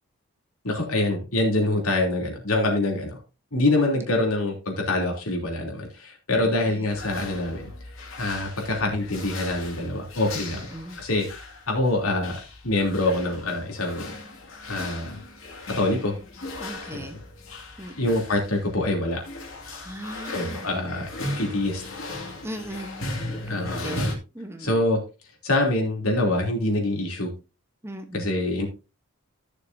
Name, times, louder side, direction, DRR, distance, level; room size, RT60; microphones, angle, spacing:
voice 1, 0.6-3.2 3.5-7.7 8.2-10.6 11.0-14.1 14.7-15.2 15.8-16.1 16.9-17.2 18.0-19.2 20.3-21.1 21.4-21.8 23.5-24.2 24.6-25.0 25.4-27.3 28.1-28.7, left 2 dB, 85° left, 1 dB, 3.1 m, -25 dB
voice 2, 6.3-6.8 10.5-11.0 16.6-17.2 17.8-18.1 19.8-20.7 22.4-24.1 24.3-24.8 27.8-28.3, right 1 dB, 10° right, 7 dB, 1.0 m, -38 dB
sound 1, 6.9-24.2, left 2 dB, 65° left, 2.4 m, -37 dB
14.5 x 6.7 x 2.7 m, 0.28 s
head